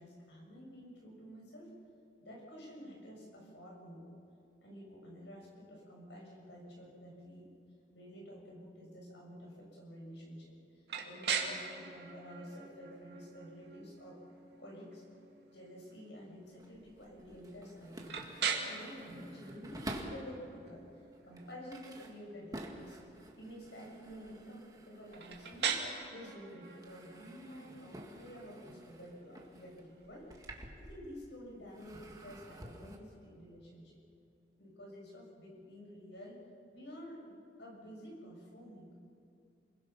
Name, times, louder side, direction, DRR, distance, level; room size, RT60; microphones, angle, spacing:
voice 1, 0.0-1.8 2.2-4.0 4.6-7.5 7.9-14.2 14.6-15.0 15.5-18.2 18.7-20.9 21.2-23.0 23.4-25.9 26.1-30.3 30.8-33.9 34.6-36.4 36.7-39.0, equal, 90° left, -1 dB, 6.9 m, -50 dB
sound 1, 10.9-30.6, right 6 dB, 70° right, 2.2 m, -43 dB
sound 2, 16.4-20.4 21.0-26.2 26.5-31.3 31.7-33.0, right 1 dB, 20° right, 1.9 m, -50 dB
30.0 x 22.0 x 5.9 m, 2.5 s
head